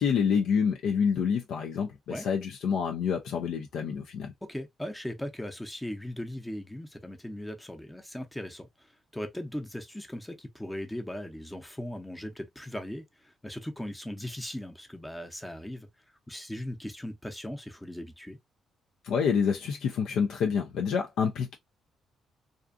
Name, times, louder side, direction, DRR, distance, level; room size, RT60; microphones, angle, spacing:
voice 1, 0.0-4.3 19.0-21.6, left 6 dB, 80° left, 0.4 m, -27 dB
voice 2, 4.4-15.9 16.3-18.4, left 1 dB, 10° left, 0.6 m, -38 dB
2.4 x 2.4 x 2.4 m
cardioid pair, 90°, 0 cm